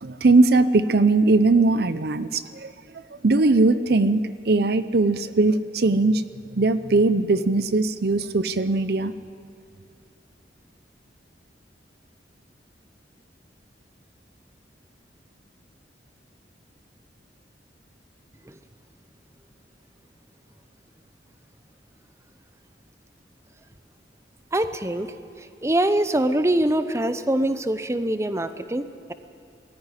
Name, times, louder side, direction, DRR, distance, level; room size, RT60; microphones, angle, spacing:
voice 1, 0.0-2.7 3.2-6.2 6.6-9.1, right 3 dB, 60° right, 13 dB, 0.6 m, -20 dB
voice 2, 24.5-25.1 25.6-29.1, right 1 dB, 15° right, 11 dB, 0.7 m, -23 dB
21.0 x 14.0 x 9.9 m, 2.4 s
head